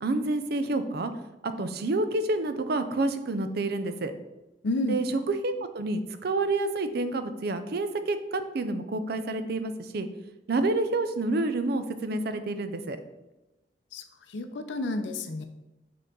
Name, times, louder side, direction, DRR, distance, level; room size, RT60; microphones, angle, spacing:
voice 1, 0.0-1.1 1.4-4.1 4.9-10.1 10.5-13.0, right 2 dB, 60° right, 10 dB, 0.5 m, -28 dB
voice 2, 4.6-5.0 13.9-14.0 14.3-15.5, left 2 dB, 85° left, 7 dB, 0.5 m, -30 dB
6.7 x 3.8 x 3.8 m, 0.99 s
head